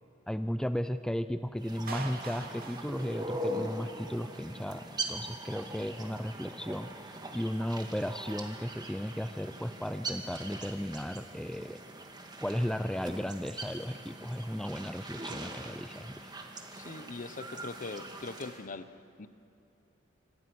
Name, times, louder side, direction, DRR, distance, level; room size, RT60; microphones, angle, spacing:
voice 1, 0.3-11.8 12.4-16.3, equal, 5° left, 10 dB, 0.5 m, -35 dB
sound 1, 1.6-18.6, right 1 dB, 20° right, 2.1 m, -42 dB
Clapping, 1.9-3.9, right 4 dB, 50° right, 2.4 m, -43 dB
voice 2, 16.8-19.3, left 3 dB, 45° left, 13 dB, 0.9 m, -42 dB
28.0 x 26.0 x 6.2 m, 2.9 s
head